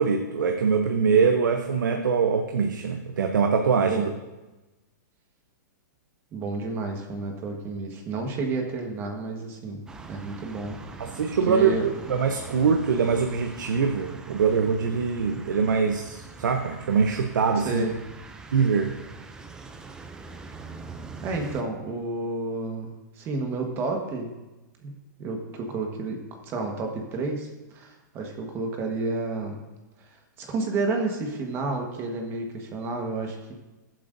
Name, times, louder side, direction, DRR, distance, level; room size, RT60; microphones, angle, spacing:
voice 1, 0.0-4.0 11.0-17.8 18.5-18.9, right 5 dB, 85° right, 5 dB, 0.8 m, -23 dB
voice 2, 6.3-11.1 11.5-11.8 17.6-17.9 21.2-24.3 24.8-24.9 25.2-29.6 30.4-33.5, right 3 dB, 25° right, 3 dB, 1.4 m, -31 dB
sound 1, 9.9-21.6, right 3 dB, 5° right, 0.4 m, -43 dB
19.0 x 7.6 x 2.6 m, 1.1 s
hypercardioid pair, 155°, 10 cm